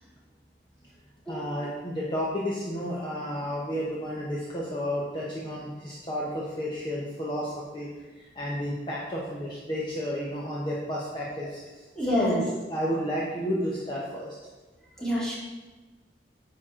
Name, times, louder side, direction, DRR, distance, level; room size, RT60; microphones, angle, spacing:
voice 1, 1.3-7.9 8.2-11.6 12.1-14.3, equal, 25° left, -5 dB, 1.0 m, -31 dB
voice 2, 12.0-12.4 13.5-13.6 15.0-15.3, equal, 5° left, -8 dB, 2.6 m, -27 dB
9.5 x 6.0 x 3.8 m, 1.3 s
head